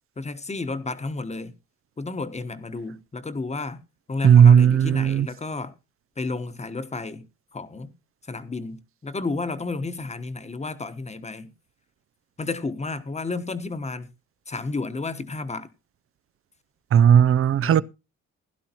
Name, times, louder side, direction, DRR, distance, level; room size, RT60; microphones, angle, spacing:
voice 1, 0.2-1.5 2.0-3.8 4.1-5.7 6.2-7.3 7.5-7.9 8.2-11.5 12.4-14.1 14.5-15.7 17.6-17.8, left 3 dB, 20° left, 1.2 m, -32 dB
voice 2, 4.2-5.3 16.9-17.8, right 8 dB, 45° right, 0.5 m, -15 dB
16.0 x 11.5 x 3.0 m
cardioid pair, 90°, 30 cm